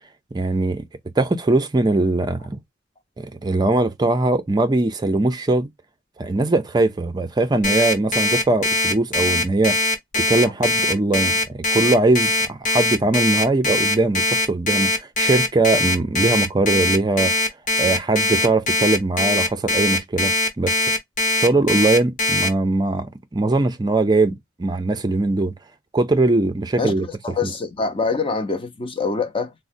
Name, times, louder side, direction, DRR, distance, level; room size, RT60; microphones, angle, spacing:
voice 1, 0.3-0.9 1.2-2.6 3.2-5.7 6.2-9.8 10.2-17.4 17.8-20.8 21.3-25.5 25.9-27.0 27.4-27.5, right 2 dB, 20° right, 0.4 m, -21 dB
Alarm, 7.6-22.5, left 2 dB, 45° left, 0.9 m, -21 dB
voice 2, 26.8-29.5, left 4 dB, 30° left, 0.5 m, -25 dB
3.9 x 2.0 x 2.4 m
head